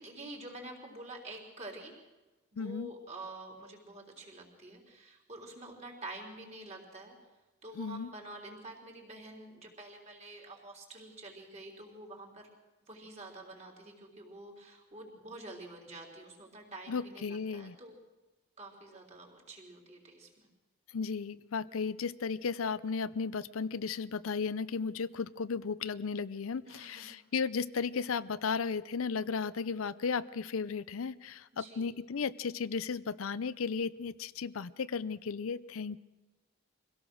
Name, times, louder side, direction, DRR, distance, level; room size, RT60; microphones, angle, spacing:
voice 1, 0.0-2.0 2.5-7.2 7.6-12.4 12.9-17.9 18.6-20.5 26.7-27.1 31.6-31.9, right 2 dB, 30° right, 1 dB, 3.8 m, -48 dB
voice 2, 2.6-2.9 7.7-8.1 16.9-17.8 20.9-36.0, left 5 dB, 75° left, 16 dB, 0.5 m, -35 dB
24.0 x 17.0 x 6.3 m, 1.1 s
head